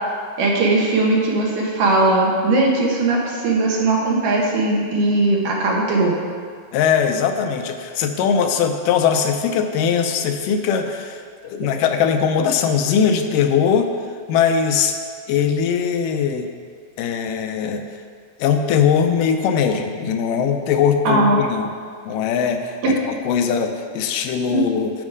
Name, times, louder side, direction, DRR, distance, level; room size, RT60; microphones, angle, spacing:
voice 1, 0.4-6.1 11.6-11.7 21.1-21.4 22.8-22.9 24.5-24.6, right 2 dB, 75° right, -2 dB, 2.9 m, -19 dB
voice 2, 6.7-13.9 14.3-14.9 15.3-16.5 17.0-17.8 18.4-21.7 22.1-22.8 23.0-24.9, left 7 dB, 85° left, 6 dB, 2.3 m, -20 dB
11.0 x 5.3 x 4.8 m, 2.1 s
omnidirectional pair, 3.8 m